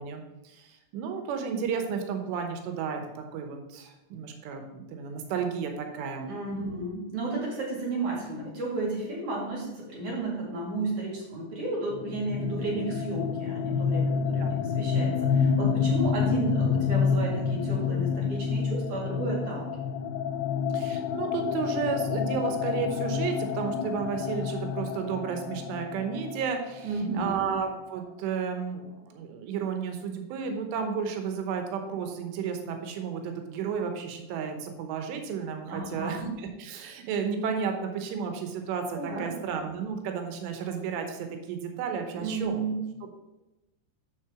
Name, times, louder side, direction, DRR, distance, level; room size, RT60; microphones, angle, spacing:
voice 1, 0.0-6.8 14.2-14.5 20.7-26.9 27.1-42.7 43.0-43.1, right 6 dB, 80° right, 5 dB, 3.2 m, -33 dB
voice 2, 6.2-19.7 26.8-27.3 35.7-36.2 38.9-39.3 42.1-42.9, right 2 dB, 50° right, -3 dB, 3.0 m, -33 dB
sound 1, 11.9-27.5, left 6 dB, 85° left, 2.4 m, -28 dB
7.5 x 6.7 x 4.9 m, 0.99 s
omnidirectional pair, 5.1 m